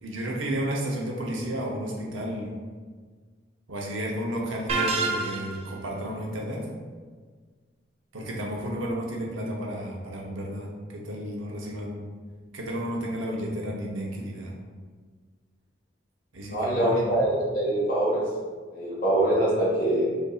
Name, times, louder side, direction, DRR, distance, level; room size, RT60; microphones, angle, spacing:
voice 1, 0.0-2.5 3.7-6.7 8.1-12.1 12.5-14.5 16.3-17.0, equal, 85° right, -2 dB, 0.8 m, -32 dB
sound 1, 4.7-5.7, right 3 dB, 30° right, 0.3 m, -27 dB
voice 2, 16.5-18.2 18.7-20.0, right 1 dB, 45° left, -8 dB, 1.4 m, -24 dB
5.2 x 2.6 x 2.4 m, 1.5 s
head